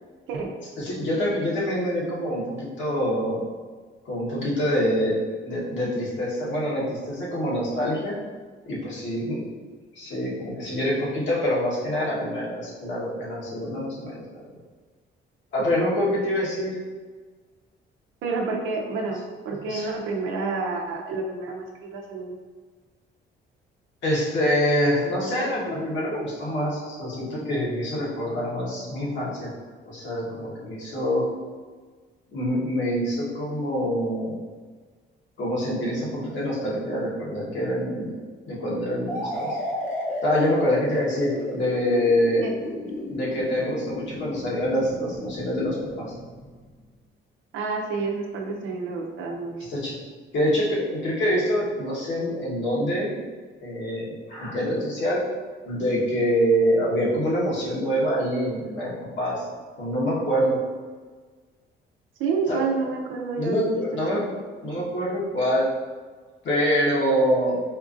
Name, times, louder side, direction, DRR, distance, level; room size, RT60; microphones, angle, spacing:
voice 1, 0.8-3.5 4.0-5.2 5.4-8.1 8.7-9.4 9.9-14.2 15.5-16.8 19.5-19.9 24.0-29.5 29.9-31.3 32.3-34.4 35.4-38.2 38.5-39.6 40.2-42.4 43.1-46.1 49.7-49.9 50.3-53.2 53.6-55.2 55.6-59.4 59.8-60.6 62.5-62.7 63.4-64.2 64.6-65.6 66.4-67.6, equal, 70° left, -6 dB, 1.3 m, -25 dB
voice 2, 18.2-22.3 42.4-42.5 47.5-49.5 62.2-64.2, right 4 dB, 90° right, 1 dB, 0.6 m, -29 dB
sound 1, 39.1-46.7, left 1 dB, 40° left, 0.8 m, -33 dB
4.3 x 2.5 x 2.5 m, 1.4 s
cardioid pair, 90°, 20 cm